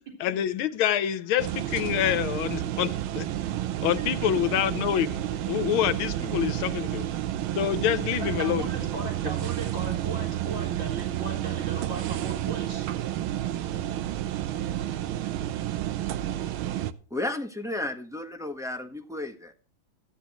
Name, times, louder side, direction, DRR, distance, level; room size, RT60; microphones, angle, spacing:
voice 1, 0.2-3.3 3.8-7.1 7.6-8.7, left 11 dB, 85° left, 1.7 m, -27 dB
sound 1, 1.4-16.9, right 12 dB, 80° right, 1.6 m, -30 dB
voice 2, 3.9-4.3 8.1-12.9, right 2 dB, 65° right, 4.5 m, -38 dB
voice 3, 17.1-19.5, left 1 dB, ahead, 0.8 m, -33 dB
15.0 x 10.0 x 3.0 m
omnidirectional pair, 2.2 m